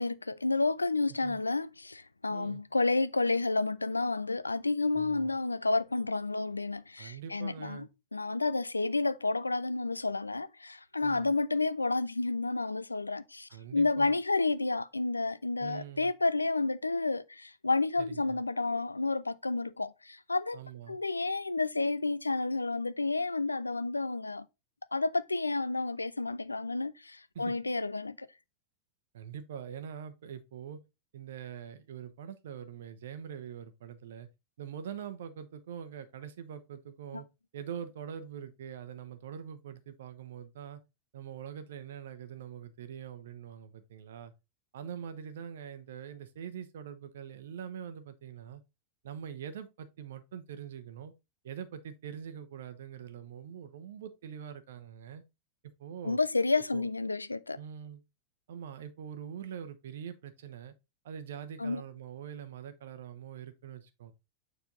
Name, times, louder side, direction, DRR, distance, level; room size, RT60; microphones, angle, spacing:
voice 1, 0.0-20.6 20.9-24.4 24.9-28.3 37.1-37.2 56.0-57.6 61.6-61.8, left 3 dB, 80° left, 0.3 m, -30 dB
voice 2, 2.3-2.6 4.9-5.3 7.0-7.9 11.0-11.3 13.5-14.2 15.6-16.1 18.0-18.4 20.5-21.0 27.3-27.5 29.1-30.8 31.1-34.3 34.6-37.3 37.5-40.8 41.1-44.3 44.7-48.6 49.0-51.1 51.4-55.2 55.8-56.2 56.5-56.9 57.5-58.0 58.5-60.7 61.0-64.1, right 8 dB, 60° right, 0.8 m, -44 dB
6.9 x 4.0 x 3.8 m
figure-of-eight pair, 90°, 0 cm